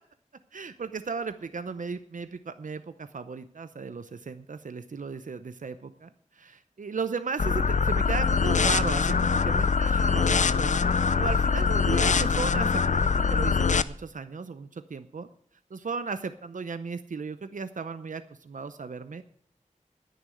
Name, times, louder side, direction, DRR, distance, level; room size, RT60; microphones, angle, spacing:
voice 1, 0.5-15.3 15.7-19.3, right 5 dB, 75° right, 11 dB, 0.7 m, -36 dB
sound 1, 7.4-13.8, left 5 dB, 65° left, 0.5 m, -23 dB
10.0 x 9.4 x 9.1 m, 0.63 s
wide cardioid pair, 60°, 13 cm